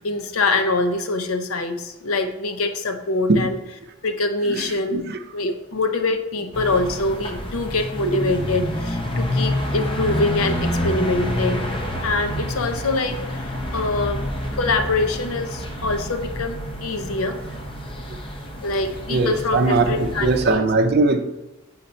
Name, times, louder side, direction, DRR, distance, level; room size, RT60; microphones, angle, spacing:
voice 1, 0.0-3.6 4.0-5.1 5.3-11.6 12.0-17.4 18.6-20.6, left 2 dB, 75° left, 7 dB, 0.6 m, -24 dB
voice 2, 4.5-5.2 8.0-8.3 19.1-21.2, right 3 dB, 50° right, 6 dB, 0.6 m, -20 dB
sound 1, 6.5-20.5, left 1 dB, 25° left, 0.8 m, -28 dB
5.4 x 4.1 x 4.2 m, 0.98 s
head